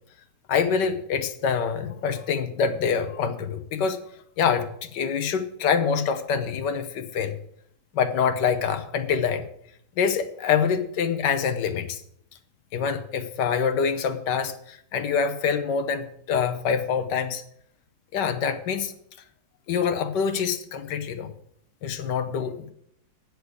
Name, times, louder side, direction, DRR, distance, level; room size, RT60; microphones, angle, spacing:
voice 1, 0.5-4.0 4.4-7.3 7.9-9.4 10.0-12.0 12.7-17.4 18.1-18.9 19.7-21.3 21.8-22.7, left 6 dB, 80° left, 8 dB, 1.6 m, -25 dB
8.2 x 6.5 x 8.3 m, 0.67 s
omnidirectional pair, 1.8 m